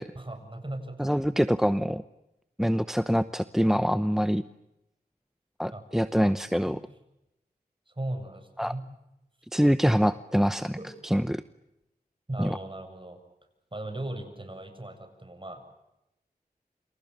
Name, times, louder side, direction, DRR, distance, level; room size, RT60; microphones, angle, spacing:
voice 1, 0.1-1.4 5.7-5.8 6.1-6.4 6.7-6.8 7.9-8.9 10.8-10.9 12.3-13.2 13.7-15.6, right 1 dB, 30° right, 7 dB, 7.8 m, -38 dB
voice 2, 1.0-2.0 2.6-4.4 5.6-6.8 8.6-8.7 9.5-10.8 11.1-11.4 12.4-12.6, equal, ahead, 13 dB, 0.9 m, -25 dB
29.0 x 27.5 x 6.9 m, 0.89 s
wide cardioid pair, 45°, 16 cm